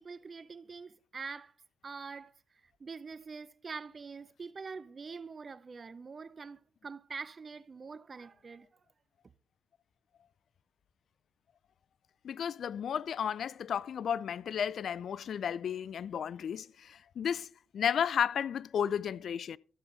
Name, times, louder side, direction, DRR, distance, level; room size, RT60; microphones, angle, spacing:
voice 1, 0.0-1.5 1.8-2.3 2.8-8.7, right 5 dB, 35° right, 0.5 m, -44 dB
voice 2, 12.2-19.6, left 8 dB, 60° left, 0.3 m, -33 dB
13.0 x 7.0 x 3.9 m
cardioid pair, 90°, 0 cm